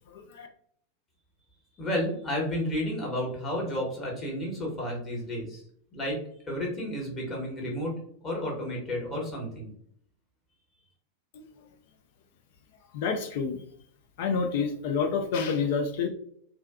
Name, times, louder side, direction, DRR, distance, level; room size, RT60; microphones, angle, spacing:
voice 1, 0.1-0.5 12.9-13.6 14.2-16.1, left 5 dB, 50° left, 4 dB, 0.3 m, -28 dB
voice 2, 1.8-5.6 5.9-6.2 6.5-7.9 8.2-9.7, left 1 dB, 25° left, -2 dB, 1.0 m, -31 dB
2.5 x 2.1 x 2.3 m, 0.64 s
figure-of-eight pair, 90°, 0 cm